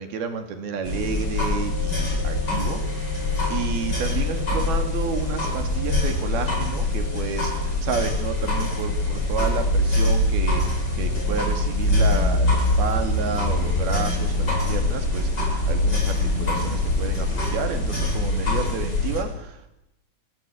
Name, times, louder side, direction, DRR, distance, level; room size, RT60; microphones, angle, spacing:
voice 1, 0.0-2.8 3.1-19.8, right 5 dB, 75° right, 6 dB, 4.5 m, -31 dB
sound 1, 0.8-19.2, left 2 dB, 25° left, 7.9 m, -23 dB
27.5 x 18.5 x 8.6 m, 0.87 s
omnidirectional pair, 4.4 m